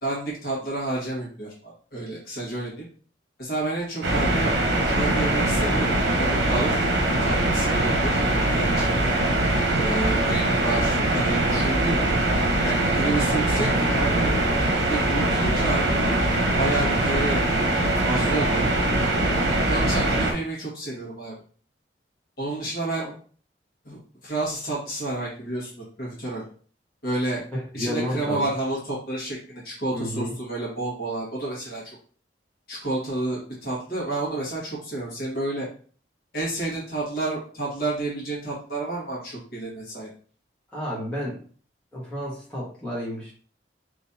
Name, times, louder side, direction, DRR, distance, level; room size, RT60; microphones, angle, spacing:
voice 1, 0.0-2.9 3.4-4.5 4.8-6.8 7.2-8.1 8.5-9.2 9.7-12.0 12.6-14.4 14.9-16.0 16.6-17.4 18.0-18.7 19.7-21.4 22.4-23.1 23.8-26.4 27.0-27.4 27.7-31.8 32.7-35.7 36.3-40.1, right 2 dB, 60° left, -4 dB, 1.6 m, -30 dB
sound 1, 4.0-20.3, right 1 dB, 80° right, 0.9 m, -22 dB
voice 2, 27.7-28.4 29.9-30.3 40.7-41.4 41.9-43.3, equal, 5° left, -8 dB, 1.4 m, -31 dB
3.7 x 3.1 x 2.8 m, 0.43 s
head